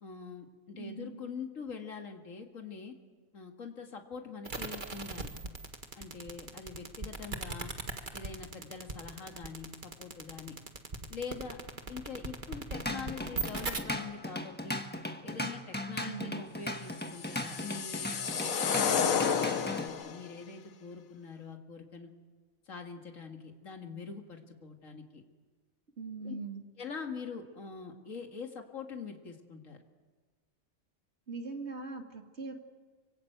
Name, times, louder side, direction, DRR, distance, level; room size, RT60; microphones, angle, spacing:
voice 1, 0.0-2.9 3.3-5.3 6.0-7.7 8.1-10.6 11.1-11.6 11.9-14.9 15.2-22.1 22.7-25.2 26.2-26.3 26.8-29.8, left 5 dB, 70° left, 3 dB, 2.4 m, -44 dB
voice 2, 0.7-1.2 16.0-16.4 26.0-26.6 31.3-32.6, right 4 dB, 55° right, 4 dB, 2.6 m, -41 dB
sound 1, 4.4-13.8, right 4 dB, 35° right, 1.8 m, -38 dB
Drum kit / Drum, 12.5-19.9, left 1 dB, 10° left, 1.4 m, -38 dB
sound 2, 17.0-20.2, left 6 dB, 85° left, 1.5 m, -31 dB
25.0 x 25.0 x 8.0 m, 1.4 s
omnidirectional pair, 1.4 m